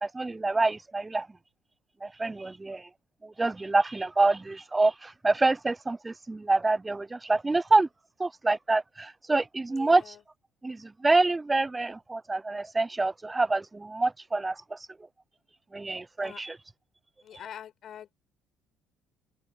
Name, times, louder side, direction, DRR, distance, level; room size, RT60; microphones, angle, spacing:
voice 1, 0.0-1.3 2.0-2.9 3.2-7.9 8.2-10.1 10.6-14.9 15.7-16.6, right 2 dB, 20° right, 0.3 m, -26 dB
voice 2, 9.7-10.2 16.2-16.4 17.2-18.1, left 10 dB, 55° left, 5.9 m, -45 dB
hypercardioid pair, 65°, 0 cm